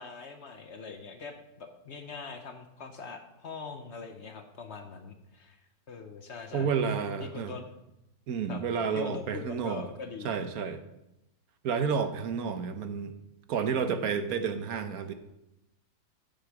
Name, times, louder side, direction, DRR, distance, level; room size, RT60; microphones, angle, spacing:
voice 1, 0.0-5.6 5.9-6.7 7.2-7.7 8.5-8.6 8.9-10.4, left 4 dB, 50° left, 6 dB, 1.0 m, -42 dB
voice 2, 6.5-7.5 8.3-9.8 10.2-10.8 11.6-13.1 13.5-15.1, right 6 dB, 70° right, 9 dB, 1.3 m, -30 dB
10.0 x 8.0 x 4.8 m, 0.88 s
omnidirectional pair, 1.6 m